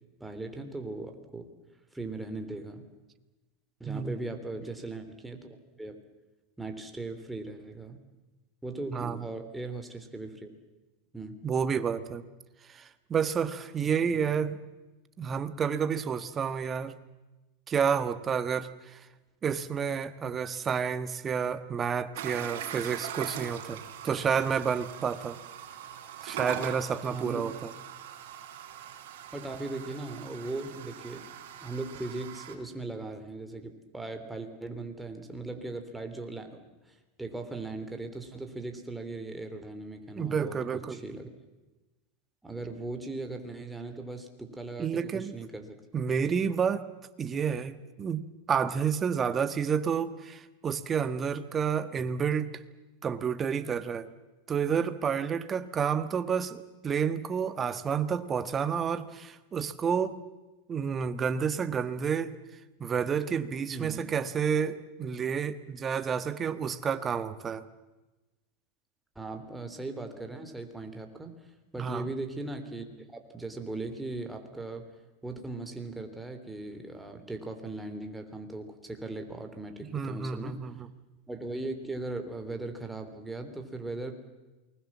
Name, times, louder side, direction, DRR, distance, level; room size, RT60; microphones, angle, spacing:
voice 1, 0.2-1.5 1.9-2.8 3.8-5.9 6.6-8.0 8.6-10.5 11.1-11.4 27.1-27.5 29.3-31.3 31.6-40.6 40.9-41.3 42.4-45.7 63.7-64.1 69.1-71.3 71.7-74.8 75.2-80.6 81.3-84.1, right 2 dB, 5° right, 5 dB, 3.4 m, -39 dB
voice 2, 3.9-4.2 8.9-9.2 11.4-12.2 12.7-14.6 15.2-16.9 17.7-19.0 19.4-25.4 26.2-27.7 40.2-41.0 44.8-45.3 45.9-46.9 47.2-52.5 53.0-54.1 54.5-60.2 60.7-62.3 62.8-67.7 71.8-72.1 79.9-80.9, right 7 dB, 25° right, 12 dB, 1.5 m, -30 dB
sound 1, 22.2-32.6, right 9 dB, 75° right, 3.6 m, -41 dB
28.0 x 20.5 x 7.4 m, 1.1 s
supercardioid pair, 125°, 0 cm